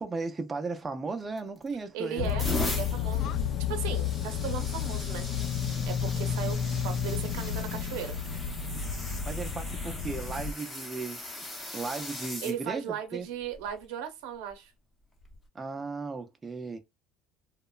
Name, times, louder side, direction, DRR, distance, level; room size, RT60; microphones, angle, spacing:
voice 1, 0.0-2.3 9.3-11.2 11.7-13.3 15.5-16.8, right 4 dB, 15° right, 0.4 m, -36 dB
sound 1, 1.4-1.7 2.2-12.6 13.4-13.7 15.2-15.4, left 1 dB, 15° left, 0.7 m, -39 dB
voice 2, 1.9-3.3 3.7-5.6 5.8-6.6 6.8-8.2 12.4-14.7, right 8 dB, 80° right, 0.6 m, -37 dB
sound 2, 2.2-10.5, left 8 dB, 50° left, 0.3 m, -31 dB
2.8 x 2.1 x 2.2 m
cardioid pair, 135°, 0 cm